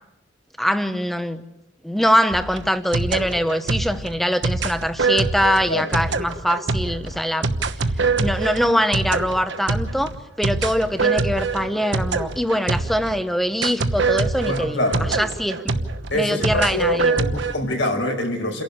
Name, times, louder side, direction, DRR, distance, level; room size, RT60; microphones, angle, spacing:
voice 1, 0.6-1.4 1.8-7.5 8.2-10.1 10.4-15.6 16.1-17.1, equal, ahead, 10 dB, 0.9 m, -23 dB
sound 1, 2.3-13.2 13.6-17.5, right 4 dB, 65° right, 1.1 m, -24 dB
voice 2, 14.4-15.1 16.1-18.6, left 1 dB, 70° left, 2 dB, 5.1 m, -24 dB
28.5 x 11.5 x 8.6 m, 0.96 s
head